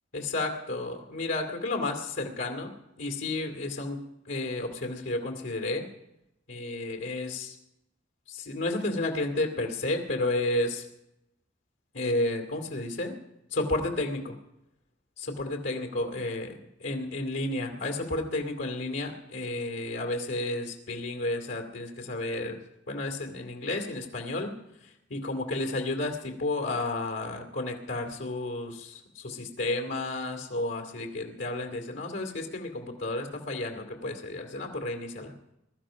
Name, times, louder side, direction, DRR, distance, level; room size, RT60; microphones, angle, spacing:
voice 1, 0.1-2.7 3.0-5.8 6.5-7.6 8.3-10.9 11.9-13.1 13.5-14.4 15.2-16.5 16.8-22.6 22.9-24.5 24.8-35.3, left 2 dB, 80° left, 3 dB, 2.4 m, -32 dB
22.0 x 12.5 x 5.1 m, 0.86 s
head